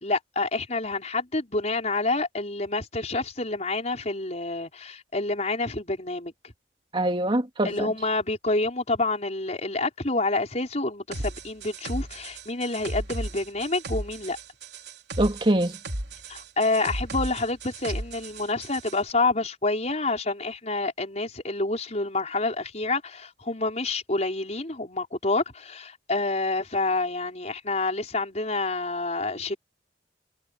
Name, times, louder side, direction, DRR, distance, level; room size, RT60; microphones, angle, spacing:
voice 1, 0.0-6.3 7.6-14.4 16.3-29.6, left 2 dB, 40° left, 5.4 m, -28 dB
voice 2, 6.9-7.9 15.2-15.8, right 1 dB, 30° right, 2.4 m, -24 dB
sound 1, 11.1-19.0, right 1 dB, 75° right, 3.4 m, -35 dB
head